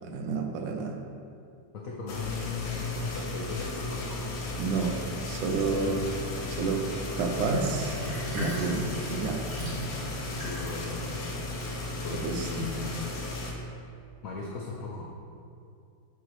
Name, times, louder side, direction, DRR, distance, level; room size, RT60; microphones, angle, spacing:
voice 1, 0.0-1.0 4.6-5.0 5.3-6.1 6.5-6.8 7.2-7.9 8.3-9.4 12.1-12.7, right 4 dB, 75° right, 3 dB, 1.2 m, -30 dB
voice 2, 1.7-4.4 10.4-11.0 12.0-13.1 14.2-15.0, left 4 dB, 85° left, -3 dB, 0.7 m, -37 dB
sound 1, 2.1-13.5, left 2 dB, 60° left, 1.1 m, -35 dB
Sink (filling or washing), 7.4-12.2, equal, 55° right, 1.7 m, -38 dB
7.7 x 3.1 x 4.6 m, 2.5 s
omnidirectional pair, 2.2 m